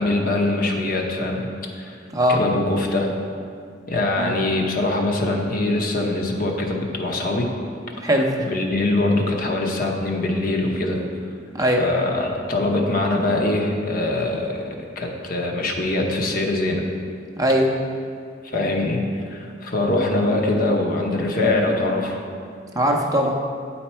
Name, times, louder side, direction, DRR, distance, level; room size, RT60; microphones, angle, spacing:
voice 1, 0.0-1.5 1.8-2.0 2.3-3.1 3.9-7.5 8.5-11.0 11.6-14.7 15.0-16.8 18.5-19.0 19.3-22.2, left 2 dB, 50° left, 1 dB, 0.8 m, -23 dB
voice 2, 8.0-8.4 11.5-11.8 17.4-17.7 22.7-23.4, equal, 20° right, 1 dB, 0.5 m, -20 dB
8.8 x 4.2 x 4.3 m, 2.3 s
head